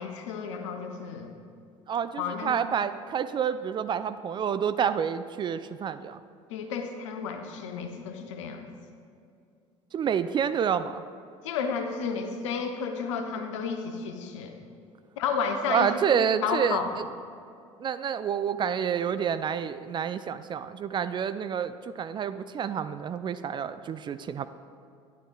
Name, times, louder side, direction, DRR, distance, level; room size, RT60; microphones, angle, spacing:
voice 1, 0.0-1.3 2.2-2.5 6.5-8.7 11.4-14.5 15.2-15.9 16.4-16.9, left 6 dB, 70° left, 6 dB, 0.8 m, -32 dB
voice 2, 1.9-6.2 9.9-11.0 15.7-16.8 17.8-24.5, right 7 dB, 30° right, 12 dB, 0.3 m, -28 dB
11.5 x 10.0 x 2.3 m, 2.5 s
figure-of-eight pair, 60°, 16 cm